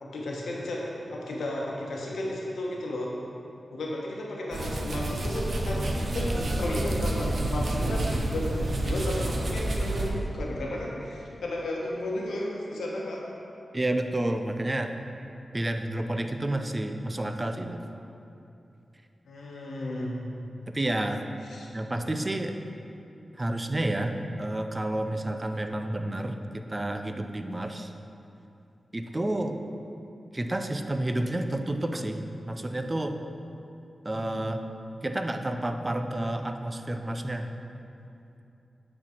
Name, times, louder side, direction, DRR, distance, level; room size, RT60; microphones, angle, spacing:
voice 1, 0.0-3.1 3.7-13.3 19.2-20.2 21.5-21.7, left 1 dB, 90° left, -2 dB, 1.0 m, -33 dB
sound 1, 4.5-10.1, right 1 dB, 65° right, 0.8 m, -29 dB
voice 2, 13.7-15.0 15.5-17.8 20.7-21.2 21.7-22.6 23.4-27.9 28.9-29.6 30.3-33.2 34.0-34.6 35.0-37.5, right 1 dB, 30° right, 6 dB, 0.5 m, -30 dB
8.4 x 4.4 x 4.4 m, 2.8 s
cardioid pair, 50°, 0 cm